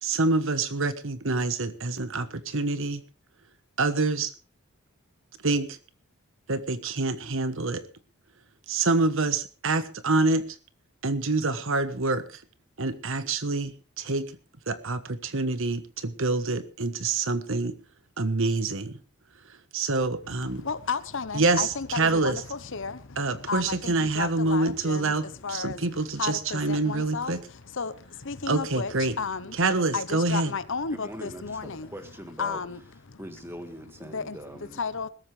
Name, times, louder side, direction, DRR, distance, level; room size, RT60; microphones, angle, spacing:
voice 1, 0.0-3.0 3.8-4.3 5.4-5.8 6.5-7.8 8.7-10.5 11.0-12.2 12.8-14.3 14.7-17.7 18.2-19.0 19.7-20.6 21.3-21.7 21.9-22.4 23.2-27.4 28.5-29.1 29.6-30.5, right 3 dB, 60° right, 1.2 m, -26 dB
voice 2, 20.3-29.6 29.9-31.9 32.4-32.8 33.1-33.2 34.0-34.4 34.7-35.1, left 5 dB, 60° left, 1.0 m, -33 dB
voice 3, 30.9-32.6 33.2-34.8, right 1 dB, 10° right, 2.0 m, -41 dB
21.0 x 13.0 x 3.4 m
head